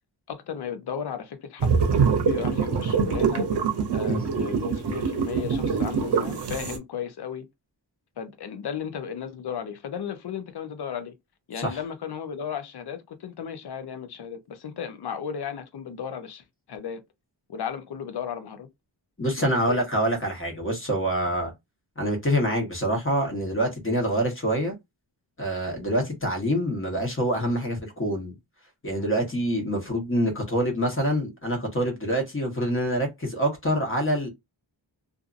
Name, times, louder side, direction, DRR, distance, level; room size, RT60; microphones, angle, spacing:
voice 1, 0.3-1.7 1.9-3.5 3.9-7.5 8.2-11.1 11.5-17.0 17.5-18.7 19.2-19.8, left 7 dB, 60° left, 0.7 m, -35 dB
sound 1, 1.6-6.8, right 6 dB, 60° right, 0.7 m, -24 dB
voice 2, 19.2-21.5 22.0-24.7 25.4-28.3 28.8-34.3, equal, 30° left, 1.1 m, -26 dB
2.6 x 2.5 x 2.4 m
wide cardioid pair, 155°, 45 cm